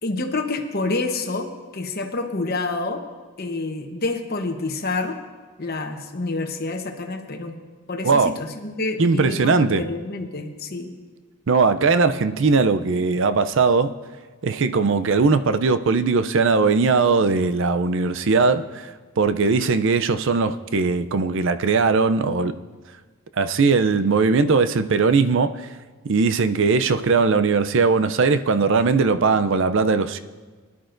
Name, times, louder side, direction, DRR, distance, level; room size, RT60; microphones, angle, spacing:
voice 1, 0.0-3.0 3.4-5.2 5.6-7.6 7.9-10.9, left 3 dB, 45° left, 5 dB, 1.0 m, -28 dB
voice 2, 9.0-9.8 11.5-13.9 14.4-18.6 19.2-22.6 23.4-25.5 26.0-30.2, right 4 dB, 55° right, 11 dB, 0.5 m, -19 dB
21.0 x 11.0 x 2.6 m, 1.4 s
head